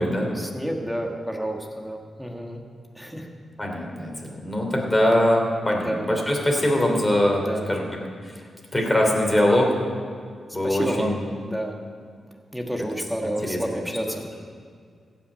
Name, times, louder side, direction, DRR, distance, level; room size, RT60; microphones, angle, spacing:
voice 1, 0.0-2.6 2.9-3.3 5.8-6.1 7.4-7.7 10.6-11.7 12.5-14.2, equal, ahead, 2 dB, 1.4 m, -30 dB
voice 2, 3.6-7.4 7.7-7.9 8.7-9.8 10.5-11.2 13.5-13.6, left 1 dB, 15° left, 0 dB, 2.8 m, -22 dB
15.5 x 6.0 x 8.4 m, 2.1 s
cardioid pair, 90°, 0 cm